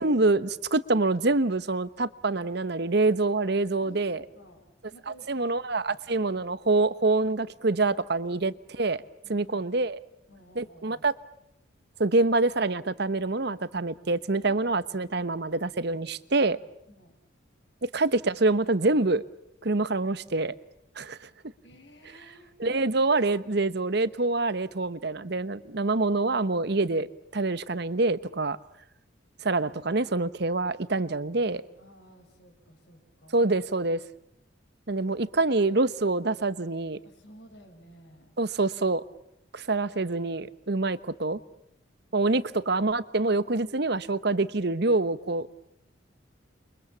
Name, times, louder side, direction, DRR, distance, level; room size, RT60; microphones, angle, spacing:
voice 1, 0.0-4.2 5.3-9.0 9.3-10.0 10.6-11.1 12.0-16.6 17.8-19.2 19.6-20.5 21.0-21.3 22.6-27.1 27.3-28.6 29.4-31.6 33.3-34.0 34.9-37.0 38.4-39.0 39.5-41.4 42.1-45.6, right 3 dB, 55° right, 15 dB, 1.0 m, -26 dB
voice 2, 3.8-4.6 4.9-6.4 9.2-9.7 10.3-11.1 14.5-14.9 16.9-17.1 21.6-22.6 31.4-33.5 37.0-38.3, equal, 60° left, 5 dB, 5.8 m, -54 dB
29.0 x 24.0 x 7.3 m, 0.80 s
head